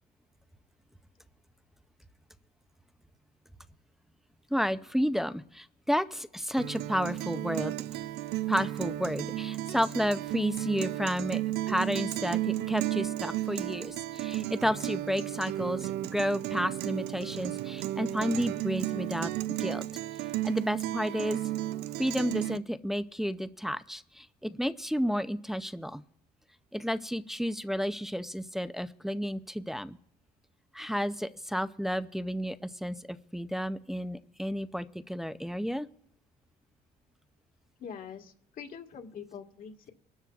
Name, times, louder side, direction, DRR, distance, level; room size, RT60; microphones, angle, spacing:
voice 1, 4.5-7.7 8.5-11.4 11.7-19.8 20.4-21.4 22.0-26.0 26.7-30.0 30.7-35.9, equal, ahead, 11 dB, 0.5 m, -31 dB
Guitar, 6.6-22.6, right 15 dB, 75° right, 0.4 m, -34 dB
voice 2, 37.8-39.9, left 7 dB, 55° left, 3 dB, 1.6 m, -44 dB
24.0 x 12.5 x 2.4 m, 0.74 s
cardioid pair, 110°, 17 cm